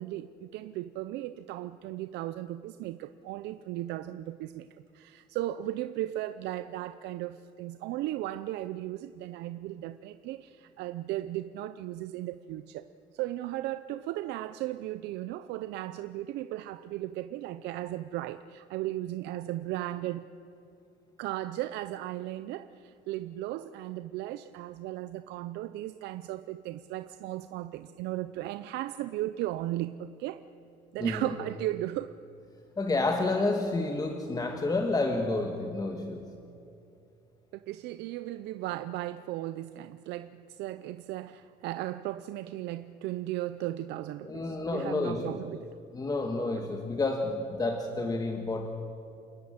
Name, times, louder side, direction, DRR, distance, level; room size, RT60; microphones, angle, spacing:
voice 1, 0.0-4.7 4.9-12.8 13.1-20.3 21.2-30.4 30.9-32.2 37.7-45.7, right 15 dB, 85° right, 0.6 m, -36 dB
voice 2, 31.0-31.3 32.8-36.3 44.2-45.4 45.9-48.7, left 2 dB, 20° left, 1.6 m, -30 dB
28.0 x 12.0 x 8.9 m
cardioid pair, 110°, 17 cm